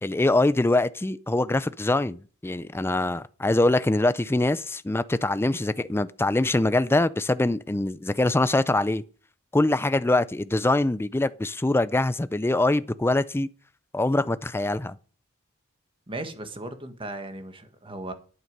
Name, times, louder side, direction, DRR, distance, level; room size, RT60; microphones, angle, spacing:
voice 1, 0.0-9.0 9.5-13.5 13.9-15.0, left 2 dB, 10° left, 0.4 m, -23 dB
voice 2, 16.1-18.1, right 2 dB, 25° right, 1.5 m, -36 dB
11.0 x 9.2 x 5.4 m
head